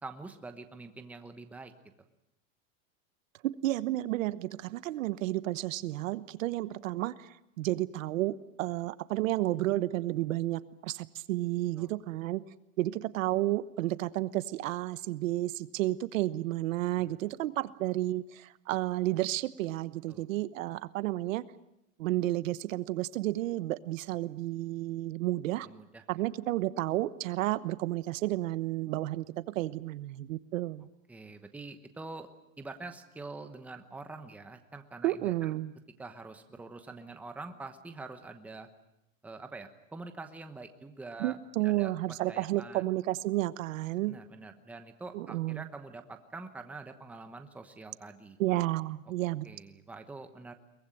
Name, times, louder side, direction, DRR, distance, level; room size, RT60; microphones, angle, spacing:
voice 1, 0.0-1.7 11.8-11.9 17.0-17.1 20.1-20.3 25.6-26.0 31.1-32.3 32.6-35.5 36.0-38.7 39.2-41.4 41.6-42.8 44.1-48.4 49.4-50.5, right 3 dB, 5° right, 7 dB, 1.0 m, -45 dB
voice 2, 3.4-12.4 12.8-21.4 22.0-25.7 26.1-30.9 35.0-35.7 41.2-44.2 45.1-45.6 48.4-49.5, right 16 dB, 75° right, 15 dB, 1.1 m, -31 dB
23.0 x 20.0 x 9.1 m, 0.86 s
supercardioid pair, 170°, 40 cm